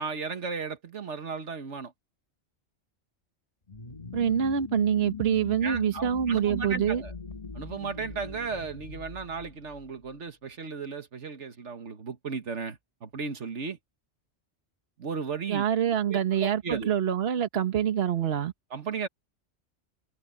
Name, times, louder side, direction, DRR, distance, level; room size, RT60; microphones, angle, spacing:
voice 1, 0.0-1.9 5.6-7.1 7.5-13.8 15.0-15.6 16.0-16.9 18.7-19.1, right 5 dB, 85° right, 1.8 m, -35 dB
sound 1, 3.7-10.1, left 5 dB, 35° left, 1.7 m, -41 dB
voice 2, 4.1-7.0 15.5-18.5, right 9 dB, 60° right, 1.3 m, -26 dB
omnidirectional pair, 1.2 m